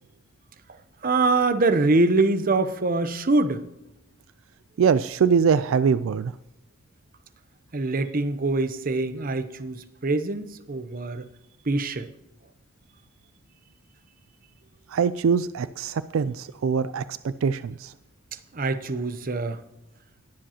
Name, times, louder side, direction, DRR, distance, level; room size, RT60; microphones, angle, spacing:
voice 1, 1.0-3.6 7.7-11.3 11.7-12.1 18.5-19.6, right 3 dB, 45° right, 0.8 m, -24 dB
voice 2, 4.8-6.3 14.9-17.9, right 6 dB, 75° right, 0.4 m, -23 dB
21.0 x 7.6 x 2.9 m
head